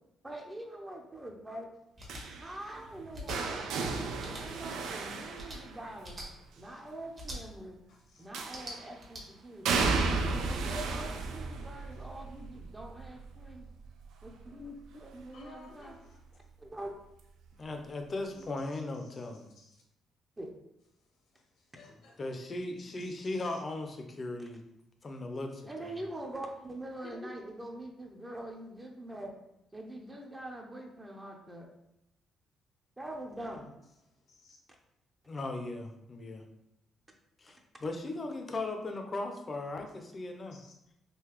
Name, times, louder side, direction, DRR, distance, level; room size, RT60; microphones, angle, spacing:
voice 1, 0.2-1.7 2.4-3.7 4.2-6.2 6.6-7.8 8.2-9.8 10.3-13.7 14.2-16.0 16.6-16.9 20.4-20.5 25.7-29.3 29.7-31.7 33.0-33.7, right 1 dB, 15° right, 2 dB, 0.7 m, -44 dB
sound 1, 2.0-2.2 3.1-3.4 4.2-4.4 5.3-5.6 6.0-6.3 7.1-7.4 8.4-9.2, equal, 40° right, 1.2 m, -43 dB
sound 2, 2.1-6.1 8.3-8.9 9.6-15.5 15.8-16.2 17.5-17.6, right 4 dB, 85° right, 0.4 m, -34 dB
voice 2, 7.9-8.3 15.3-16.2 18.3-18.6 19.6-19.8 21.7-22.2 22.8-23.4 34.3-34.6 40.5-40.7, left 2 dB, 75° left, 0 dB, 0.9 m, -54 dB
voice 3, 17.6-19.5 22.2-24.6 25.0-25.9 27.0-27.3 35.3-36.4 37.4-40.6, left 2 dB, 35° left, 4 dB, 0.6 m, -38 dB
3.8 x 2.7 x 3.0 m, 0.84 s
cardioid pair, 90°, 0 cm